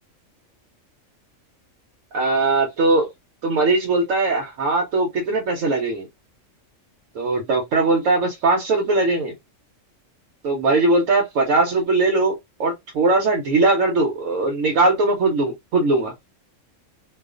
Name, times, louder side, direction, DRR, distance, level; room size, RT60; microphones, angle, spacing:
voice 1, 2.1-3.1 3.4-6.1 7.2-9.3 10.4-16.1, right 3 dB, 85° right, 1.1 m, -20 dB
2.4 x 2.3 x 2.3 m
omnidirectional pair, 1.3 m